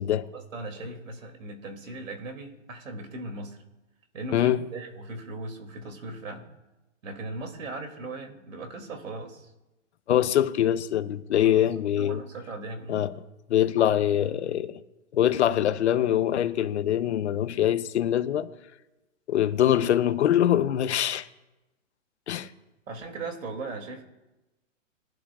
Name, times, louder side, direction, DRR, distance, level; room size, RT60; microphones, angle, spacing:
voice 1, 0.3-3.6 4.1-6.5 7.0-9.5 11.4-11.6 11.9-13.0 22.9-24.0, right 2 dB, 85° right, 2.7 m, -38 dB
voice 2, 10.1-12.2 12.9-13.1 13.5-14.8 15.1-18.5 19.3-21.3 22.3-22.5, left 11 dB, 60° left, 0.8 m, -23 dB
22.0 x 11.5 x 2.4 m
hypercardioid pair, 155°, 38 cm